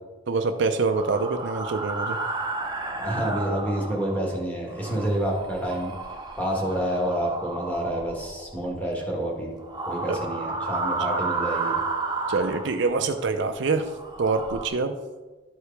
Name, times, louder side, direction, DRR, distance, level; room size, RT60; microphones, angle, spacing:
voice 1, 0.3-2.2 10.1-10.2 12.3-13.9 14.2-14.9, right 4 dB, 55° right, 7 dB, 0.4 m, -25 dB
sound 1, 0.9-4.4 4.7-8.7 9.6-13.2 13.7-14.7, right 3 dB, 20° right, 0.7 m, -32 dB
voice 2, 3.0-5.9 6.4-9.5 9.8-11.8, right 1 dB, 10° left, -3 dB, 1.5 m, -28 dB
12.0 x 4.8 x 3.3 m, 1.2 s
head